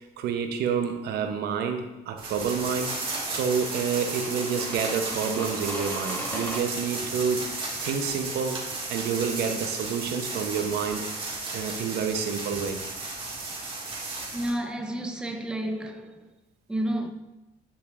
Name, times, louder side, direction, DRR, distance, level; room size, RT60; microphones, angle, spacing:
voice 1, 0.0-3.0 3.3-7.5 7.8-8.6 8.9-11.1 11.5-12.8, right 6 dB, 75° right, 0.8 m, -28 dB
sound 1, 2.2-14.5, right 3 dB, 30° right, 1.9 m, -34 dB
sound 2, 3.1-6.6, equal, 10° left, 1.6 m, -38 dB
voice 2, 14.3-16.3 16.7-17.1, right 1 dB, 5° right, 0.6 m, -30 dB
9.8 x 5.0 x 2.5 m
cardioid pair, 110°, 17 cm